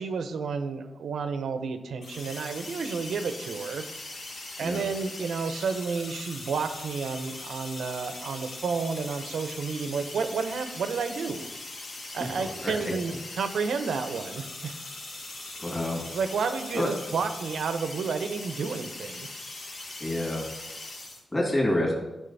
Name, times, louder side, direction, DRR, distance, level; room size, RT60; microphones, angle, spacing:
voice 1, 0.0-3.8 4.6-11.5 12.1-14.7 16.1-19.3, right 5 dB, 85° right, 9 dB, 0.8 m, -31 dB
sound 1, 2.0-21.2, left 2 dB, 75° left, 2.5 m, -40 dB
voice 2, 15.6-16.0 16.7-16.9 20.0-20.4 21.3-21.9, left 1 dB, 20° left, -2 dB, 2.5 m, -27 dB
12.5 x 5.1 x 4.1 m, 1.0 s
wide cardioid pair, 100°, 0 cm